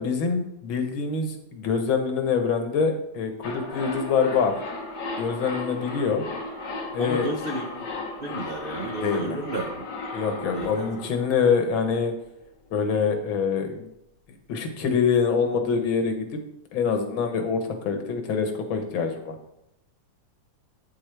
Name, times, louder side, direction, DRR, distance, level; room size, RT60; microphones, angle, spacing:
voice 1, 0.0-4.6 5.2-6.2 6.9-7.3 9.0-9.4 10.1-12.1 12.7-13.9 14.5-16.4 16.7-19.4, left 5 dB, 90° left, 5 dB, 2.0 m, -25 dB
sound 1, 3.4-12.2 12.5-12.6, left 2 dB, 60° left, 1.8 m, -35 dB
voice 2, 7.0-7.9 8.2-9.9 10.5-10.9, right 2 dB, 75° right, 3 dB, 0.5 m, -32 dB
8.6 x 7.9 x 3.4 m, 0.81 s
omnidirectional pair, 2.1 m